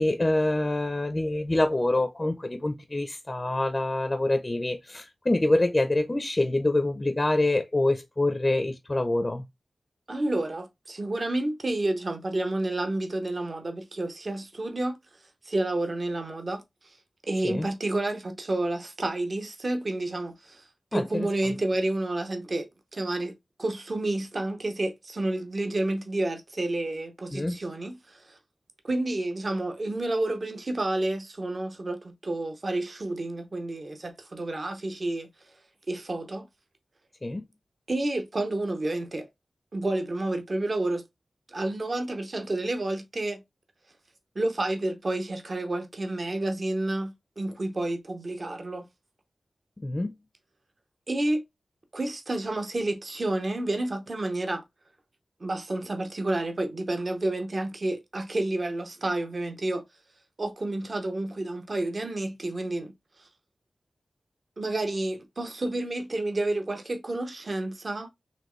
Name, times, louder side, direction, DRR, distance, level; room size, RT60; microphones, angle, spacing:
voice 1, 0.0-9.4 17.4-17.7 20.9-21.5 27.3-27.6 37.2-37.4 49.8-50.1, left 2 dB, 25° left, 0.5 m, -26 dB
voice 2, 10.1-15.0 15.4-17.0 17.2-20.6 20.9-23.3 23.6-28.4 28.8-35.3 35.9-36.5 37.9-39.3 39.7-41.0 41.5-43.4 44.3-48.9 51.1-51.4 51.9-54.6 55.4-59.8 60.4-62.9 63.2-63.3 64.6-68.1, right 2 dB, 45° right, 0.8 m, -30 dB
4.3 x 3.0 x 3.0 m
wide cardioid pair, 85°, 0 cm